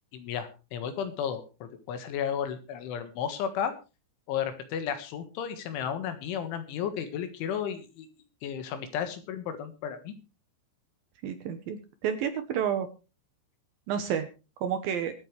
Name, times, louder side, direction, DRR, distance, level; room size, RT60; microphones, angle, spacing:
voice 1, 0.1-3.7 4.3-8.1 8.4-10.1, left 8 dB, 80° left, 9 dB, 4.0 m, -33 dB
voice 2, 11.2-12.9 13.9-14.3 14.6-15.1, right 8 dB, 75° right, 8 dB, 2.2 m, -30 dB
25.0 x 8.5 x 3.2 m, 0.31 s
omnidirectional pair, 5.5 m